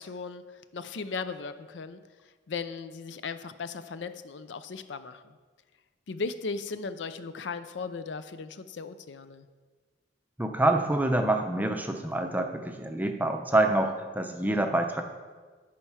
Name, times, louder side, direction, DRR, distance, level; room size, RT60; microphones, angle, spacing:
voice 1, 0.0-2.0 2.5-5.4 6.1-9.5, left 4 dB, 70° left, 12 dB, 0.5 m, -37 dB
voice 2, 10.4-15.0, right 2 dB, 10° right, 5 dB, 0.6 m, -26 dB
13.5 x 4.5 x 5.6 m, 1.4 s
head